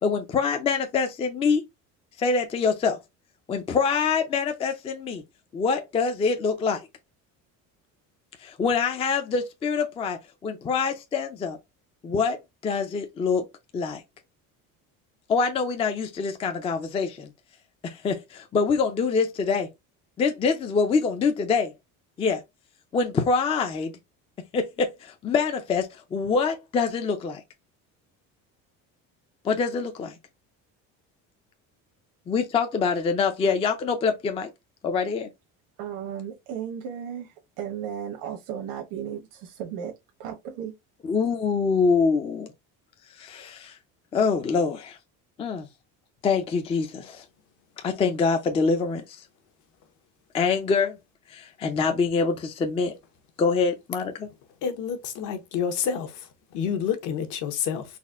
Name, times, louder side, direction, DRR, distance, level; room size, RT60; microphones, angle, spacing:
voice 1, 0.0-1.7 2.2-3.0 3.5-5.2 5.5-6.9 8.4-11.6 12.0-12.4 12.6-13.5 13.7-14.0 15.3-17.3 17.8-19.7 20.2-21.7 22.2-22.4 22.9-23.9 24.5-27.4 29.4-30.2 32.3-34.5 34.8-35.3 41.0-42.5 43.2-43.8 44.1-45.0 45.4-45.7 46.2-47.2 47.8-49.2 50.3-51.0 51.3-53.0 53.4-54.3, left 5 dB, 20° left, 0.4 m, -25 dB
voice 2, 35.8-39.9 40.2-40.7, right 9 dB, 85° right, 1.1 m, -35 dB
voice 3, 54.6-56.3 56.5-58.0, left 7 dB, 60° left, 1.0 m, -29 dB
4.1 x 2.2 x 3.5 m
cardioid pair, 170°, 34 cm